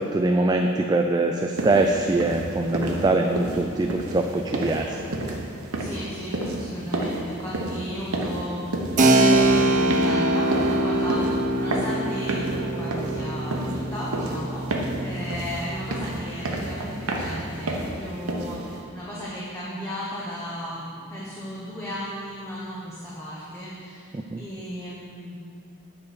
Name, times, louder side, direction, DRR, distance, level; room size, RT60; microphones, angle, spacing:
voice 1, 0.0-5.4 24.1-24.4, right 2 dB, 20° right, 3 dB, 0.3 m, -23 dB
sound 1, 1.6-18.8, right 1 dB, 85° right, 1.1 m, -31 dB
voice 2, 5.8-8.6 9.0-25.4, equal, 10° left, -8 dB, 1.2 m, -35 dB
Keyboard (musical), 9.0-17.3, right 1 dB, 35° right, 0.7 m, -24 dB
9.5 x 4.8 x 6.9 m, 2.4 s
head